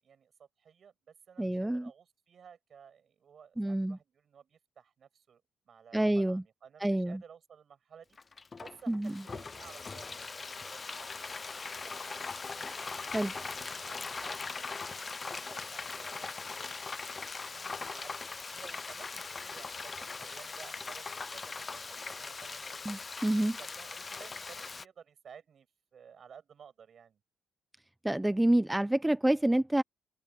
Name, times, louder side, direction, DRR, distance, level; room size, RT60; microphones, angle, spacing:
voice 1, 0.0-8.2 8.6-12.2 12.6-12.8 13.1-16.3 16.6-17.1 17.5-18.2 18.5-22.8 23.6-25.7 25.9-27.2, right 7 dB, 55° right, 7.9 m, -55 dB
voice 2, 1.4-1.9 3.6-4.0 5.9-6.4 6.8-7.2 8.9-9.2 13.1-13.3 22.9-23.6 28.0-29.8, right 1 dB, 10° right, 0.7 m, -28 dB
Frying (food), 8.2-24.8, left 4 dB, 30° left, 0.3 m, -40 dB
cardioid pair, 80°, 0 cm